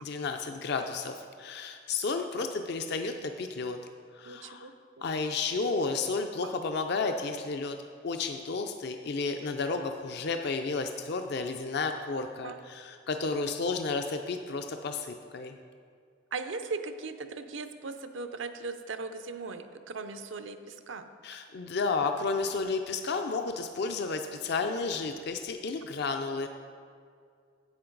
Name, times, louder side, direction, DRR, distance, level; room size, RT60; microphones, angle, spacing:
voice 1, 0.0-3.8 4.1-4.7 5.0-7.8 8.0-15.6 21.2-26.5, left 4 dB, 60° left, 6 dB, 0.5 m, -32 dB
voice 2, 4.2-4.7 12.4-12.6 16.3-21.0, right 4 dB, 75° right, 9 dB, 0.6 m, -38 dB
10.5 x 7.9 x 3.9 m, 2.2 s
head